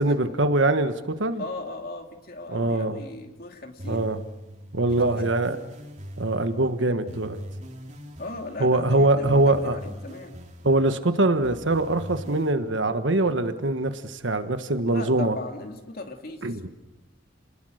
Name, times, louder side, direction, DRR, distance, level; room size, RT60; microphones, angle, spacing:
voice 1, 0.0-1.4 2.5-3.0 3.9-4.2 4.7-5.6 6.2-7.4 8.6-9.8 10.6-15.4 16.4-16.7, right 2 dB, 70° right, 9 dB, 1.5 m, -23 dB
voice 2, 1.4-4.1 5.0-5.3 8.2-10.4 14.8-16.7, left 2 dB, 50° left, 4 dB, 2.7 m, -37 dB
sound 1, 3.8-12.5, equal, 40° right, 3.0 m, -41 dB
29.5 x 20.5 x 6.6 m, 1.1 s
head